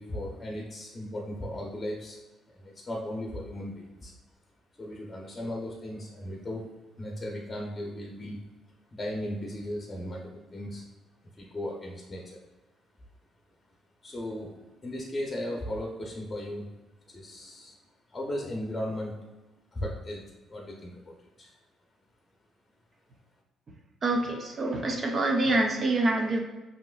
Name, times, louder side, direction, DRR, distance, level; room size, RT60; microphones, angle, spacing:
voice 1, 0.0-2.2 2.5-4.1 4.7-6.7 7.0-8.4 8.9-10.8 11.4-12.4 14.0-16.7 17.1-17.8 18.1-19.1 19.7-20.2 20.5-21.5, left 1 dB, 20° left, -1 dB, 0.8 m, -36 dB
voice 2, 24.0-26.4, right 2 dB, 40° right, 3 dB, 0.8 m, -26 dB
5.3 x 3.0 x 2.4 m, 1.1 s
cardioid pair, 85°, 0 cm